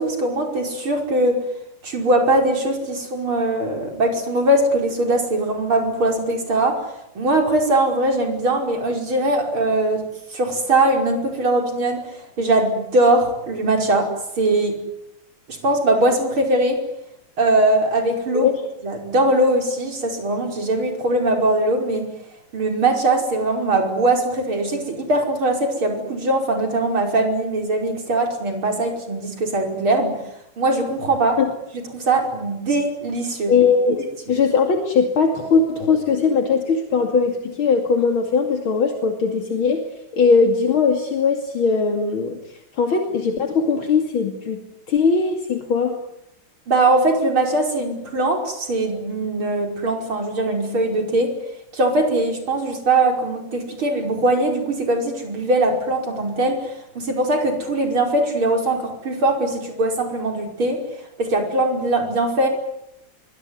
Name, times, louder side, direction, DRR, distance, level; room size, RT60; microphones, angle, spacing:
voice 1, 0.0-1.4 1.8-6.8 7.2-10.0 10.3-14.1 14.3-14.8 15.5-16.8 17.4-18.5 18.8-22.1 22.5-30.2 30.6-31.4 31.9-33.5 34.3-34.4 46.7-51.3 51.7-60.8 61.2-62.5, right 2 dB, 70° right, 3 dB, 6.2 m, -21 dB
voice 2, 33.5-34.0 34.3-39.8 40.1-42.4 42.8-44.6 44.9-46.0, left 5 dB, 70° left, 4 dB, 3.3 m, -19 dB
25.0 x 23.5 x 9.7 m, 0.82 s
omnidirectional pair, 2.4 m